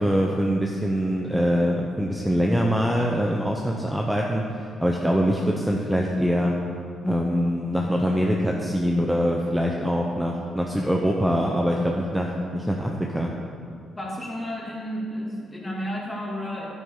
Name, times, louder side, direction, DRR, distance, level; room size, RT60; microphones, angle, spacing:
voice 1, 0.0-4.4 4.8-6.6 7.0-13.3, equal, 5° right, -1 dB, 0.8 m, -23 dB
voice 2, 13.9-16.7, equal, 20° left, -4 dB, 2.5 m, -32 dB
10.0 x 9.4 x 3.8 m, 2.3 s
cardioid pair, 90°, 0 cm